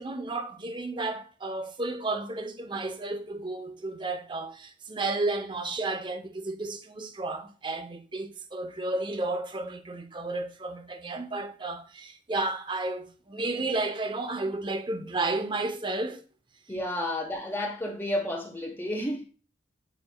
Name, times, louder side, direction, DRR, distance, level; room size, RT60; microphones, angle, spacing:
voice 1, 0.0-16.2 17.0-17.1, right 2 dB, 25° right, 0.6 m, -32 dB
voice 2, 16.7-19.3, left 1 dB, 10° left, 1.0 m, -31 dB
8.7 x 5.0 x 2.2 m
head